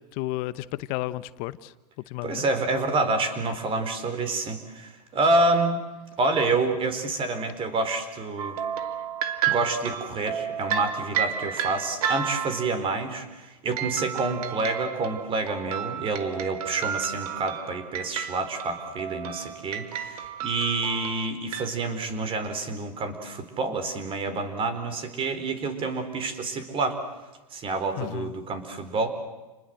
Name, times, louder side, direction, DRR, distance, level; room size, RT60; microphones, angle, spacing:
voice 1, 0.0-1.7 2.1-2.4 28.0-28.3, left 17 dB, 45° left, 16 dB, 1.0 m, -32 dB
voice 2, 2.2-5.8 6.2-8.6 9.5-27.0 27.5-29.1, right 3 dB, 25° right, 9 dB, 4.5 m, -28 dB
sound 1, 8.4-12.8 13.7-21.7, right 8 dB, 65° right, 2.7 m, -32 dB
29.5 x 20.5 x 7.8 m, 1.1 s
hypercardioid pair, 120°, 20 cm